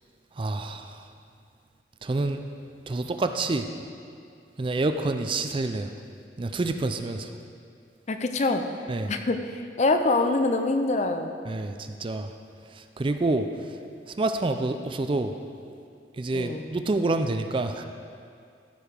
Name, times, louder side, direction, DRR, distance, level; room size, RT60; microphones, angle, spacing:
voice 1, 0.4-1.0 2.0-2.4 2.9-3.7 4.6-5.9 6.4-7.3 8.9-9.1 11.5-12.3 12.8-13.5 14.2-15.3 16.2-17.8, right 2 dB, 30° right, 7 dB, 0.4 m, -27 dB
voice 2, 8.1-8.6 9.1-11.4 16.3-16.7, left 2 dB, 40° left, 7 dB, 0.5 m, -25 dB
14.5 x 4.8 x 5.1 m, 2.4 s
head